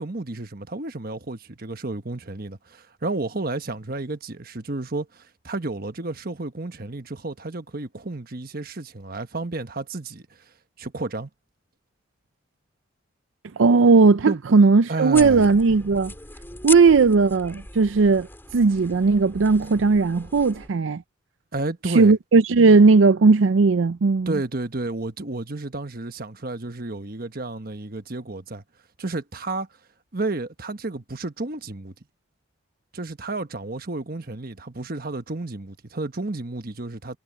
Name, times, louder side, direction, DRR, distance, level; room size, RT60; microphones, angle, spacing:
voice 1, 0.0-10.3 10.8-11.3 14.3-14.4 14.9-15.5 21.5-22.1 24.3-28.6 29.0-29.7 30.1-31.9 32.9-37.2, right 2 dB, 50° right, 1.2 m, -31 dB
voice 2, 13.6-16.1 16.6-18.3 18.5-21.0 21.9-24.3, right 4 dB, 80° right, 0.5 m, -17 dB
sound 1, 15.1-20.7, left 3 dB, 10° left, 3.6 m, -38 dB
head